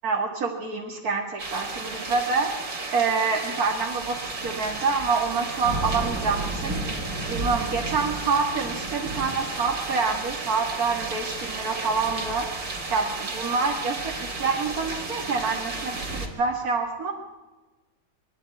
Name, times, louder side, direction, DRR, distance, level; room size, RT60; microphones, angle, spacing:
voice 1, 0.0-2.5 2.9-4.2 4.4-6.8 7.3-12.5 12.9-17.1, right 4 dB, 55° right, 0 dB, 2.3 m, -27 dB
sound 1, 1.4-16.3, right 3 dB, 90° right, 4.2 m, -32 dB
24.5 x 11.5 x 9.8 m, 1.2 s
omnidirectional pair, 2.0 m